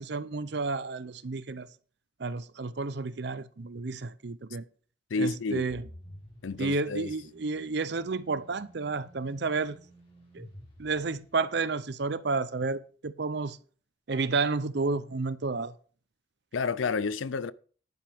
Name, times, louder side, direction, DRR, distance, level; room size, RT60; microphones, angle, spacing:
voice 1, 0.0-1.7 2.2-4.6 5.2-5.8 6.6-9.8 10.3-10.5 10.8-13.6 14.1-15.7, right 3 dB, 55° right, 0.6 m, -31 dB
voice 2, 5.1-5.7 6.4-7.1 16.5-17.5, left 4 dB, 80° left, 0.5 m, -30 dB
sound 1, 5.7-11.7, equal, 30° left, 3.3 m, -52 dB
11.0 x 9.2 x 3.5 m
head